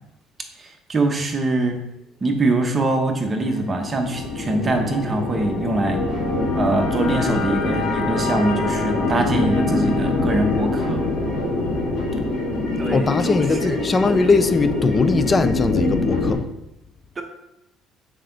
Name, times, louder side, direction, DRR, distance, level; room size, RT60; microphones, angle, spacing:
voice 1, 0.6-1.8 2.2-6.0 6.5-11.0 12.8-13.8 17.2-17.3, right 2 dB, 25° right, 1.0 m, -23 dB
sound 1, 2.9-16.3, left 2 dB, 40° left, 1.6 m, -24 dB
voice 2, 12.9-16.5, left 4 dB, 25° left, 0.4 m, -20 dB
6.6 x 4.7 x 3.9 m
cardioid pair, 130°, 0 cm